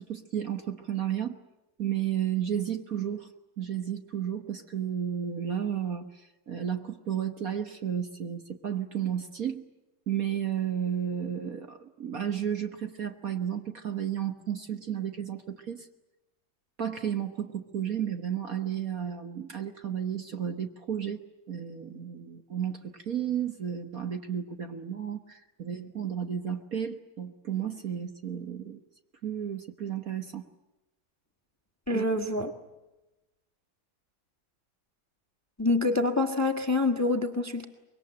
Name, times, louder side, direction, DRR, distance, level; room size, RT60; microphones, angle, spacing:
voice 1, 0.0-1.4 1.8-3.3 3.6-9.6 10.1-15.9 16.8-21.2 21.5-28.8 29.2-30.5 31.9-32.1, right 9 dB, 50° right, 6 dB, 1.5 m, -33 dB
voice 2, 31.9-32.5 35.6-37.7, left 2 dB, 10° left, 5 dB, 1.3 m, -26 dB
25.0 x 22.5 x 8.8 m, 1.0 s
omnidirectional pair, 2.2 m